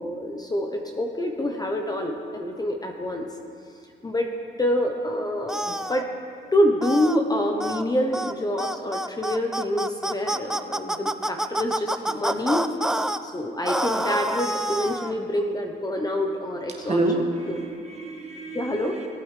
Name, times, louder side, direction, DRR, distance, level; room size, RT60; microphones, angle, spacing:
voice 1, 0.0-3.3 4.0-4.3 4.6-6.1 6.5-12.6 13.2-17.0 17.5-17.6 18.5-19.0, left 1 dB, 20° left, 3 dB, 0.8 m, -26 dB
sound 1, 5.5-6.0 6.8-7.2 7.6-7.8 8.1-8.3 8.6-13.2 13.6-15.1, right 1 dB, 5° right, 0.3 m, -27 dB
voice 2, 16.8-19.1, right 2 dB, 35° right, -1 dB, 1.9 m, -28 dB
18.5 x 8.4 x 3.3 m, 2.4 s
cardioid pair, 90°, 20 cm